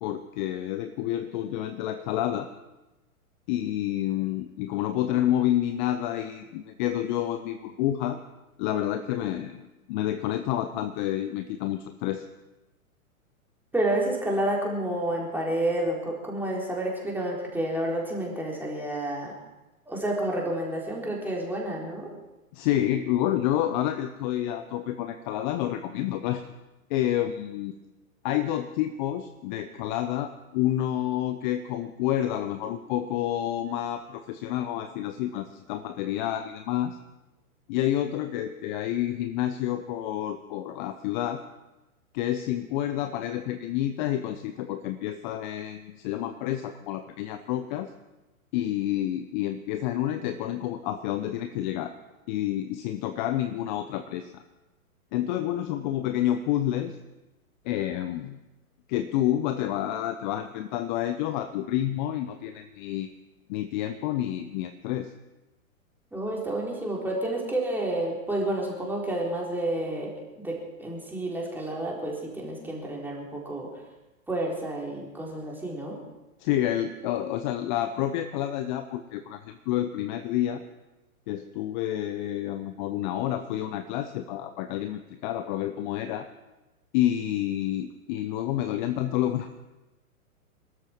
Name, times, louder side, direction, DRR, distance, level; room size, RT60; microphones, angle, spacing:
voice 1, 0.0-2.5 3.5-8.2 8.6-12.2 22.5-26.5 26.9-27.7 28.2-37.0 37.7-41.4 42.1-47.9 48.5-51.9 52.3-54.4 55.1-57.0 57.6-58.4 58.9-63.1 63.5-65.1 76.4-80.6 81.3-86.3 86.9-89.6, left 12 dB, 35° left, 9 dB, 0.8 m, -29 dB
voice 2, 13.7-19.3 19.9-22.1 66.1-73.8 74.3-76.0, right 1 dB, 5° right, -3 dB, 4.0 m, -30 dB
22.5 x 13.5 x 4.6 m, 1.0 s
hypercardioid pair, 120°, 44 cm